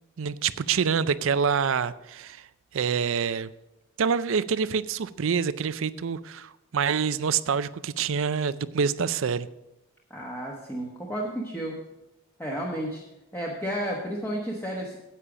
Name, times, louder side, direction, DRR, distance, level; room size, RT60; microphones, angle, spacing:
voice 1, 0.2-2.5 2.7-3.5 4.0-9.5, right 6 dB, 65° right, 0.5 m, -26 dB
voice 2, 10.1-11.9 12.4-13.0 13.3-15.0, equal, 10° left, 1.1 m, -32 dB
10.0 x 8.4 x 5.0 m
head